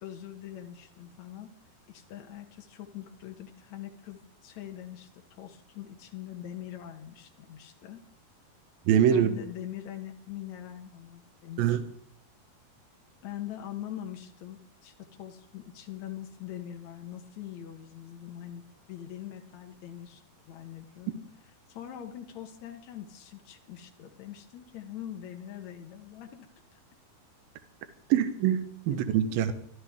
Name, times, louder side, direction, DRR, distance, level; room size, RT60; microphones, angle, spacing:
voice 1, 0.0-1.5 1.9-8.0 9.1-11.8 13.2-18.6 18.9-21.2 21.7-26.5 28.9-29.0 29.3-29.5, left 11 dB, 70° left, 3 dB, 1.7 m, -43 dB
voice 2, 8.9-9.3 11.6-11.8 28.1-29.5, right 9 dB, 70° right, 9 dB, 2.7 m, -24 dB
26.0 x 12.5 x 3.6 m, 0.69 s
omnidirectional pair, 4.9 m